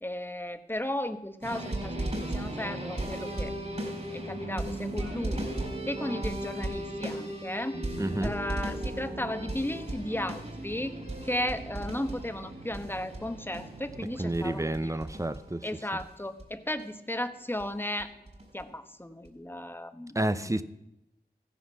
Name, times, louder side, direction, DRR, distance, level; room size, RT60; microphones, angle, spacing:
voice 1, 0.0-5.5 5.9-7.8 8.2-11.0 11.2-15.0 15.6-18.1 18.5-20.6, left 1 dB, 15° left, 9 dB, 1.1 m, -35 dB
sound 1, 1.4-16.1 16.4-16.5 16.8-16.9 17.6-17.7 18.0-18.6 19.2-19.3, right 1 dB, 40° right, 4.3 m, -36 dB
sound 2, 7.9-14.3, right 2 dB, 65° right, 2.0 m, -47 dB
voice 2, 8.0-8.3 14.2-15.7 20.1-20.6, right 1 dB, 20° right, 13 dB, 0.7 m, -30 dB
15.5 x 9.9 x 6.0 m, 0.87 s
wide cardioid pair, 65°, 17 cm